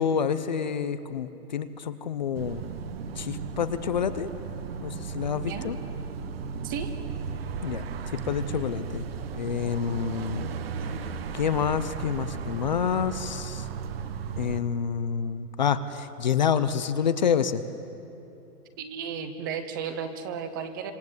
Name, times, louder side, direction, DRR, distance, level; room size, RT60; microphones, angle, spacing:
voice 1, 0.0-2.6 3.2-4.3 4.8-5.8 7.6-7.8 8.2-9.1 9.3-10.5 11.3-13.6 14.4-17.6, left 7 dB, 30° left, 12 dB, 0.6 m, -28 dB
sound 1, 2.3-14.6, right 6 dB, 40° right, 1.2 m, -35 dB
voice 2, 5.3-5.7 6.6-6.9 18.8-20.9, right 7 dB, 15° right, 9 dB, 0.7 m, -34 dB
26.5 x 25.5 x 8.0 m, 2.8 s
hypercardioid pair, 165°, 46 cm